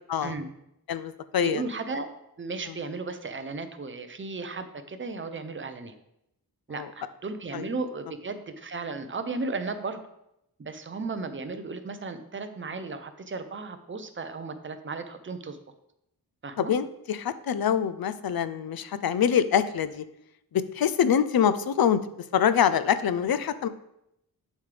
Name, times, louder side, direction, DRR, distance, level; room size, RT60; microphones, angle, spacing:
voice 1, 0.9-1.6 6.8-6.9 7.5-7.6 16.6-20.0 20.5-22.0 22.3-23.7, left 8 dB, 65° left, 14 dB, 0.5 m, -25 dB
voice 2, 1.4-2.1 2.4-5.9 6.7-10.0 10.6-15.6 16.4-16.7, right 3 dB, 30° right, 8 dB, 0.7 m, -35 dB
7.3 x 7.1 x 3.4 m, 0.82 s
wide cardioid pair, 140°, 38 cm